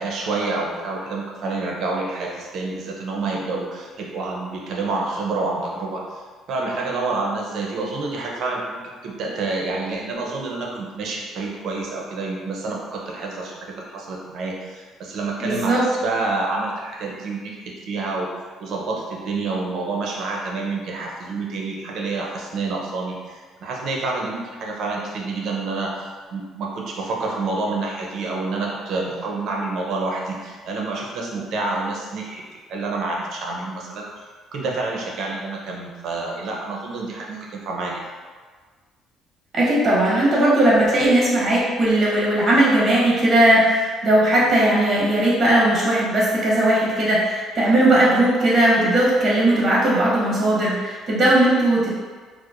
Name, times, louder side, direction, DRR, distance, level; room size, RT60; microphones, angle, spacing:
voice 1, 0.0-6.2 6.5-18.3 18.6-34.1 34.5-38.0, right 3 dB, 60° right, -1 dB, 0.6 m, -28 dB
voice 2, 15.4-15.8 39.5-52.0, right 1 dB, 35° right, -5 dB, 1.0 m, -18 dB
4.5 x 2.1 x 2.5 m, 1.5 s
cardioid pair, 120°, 0 cm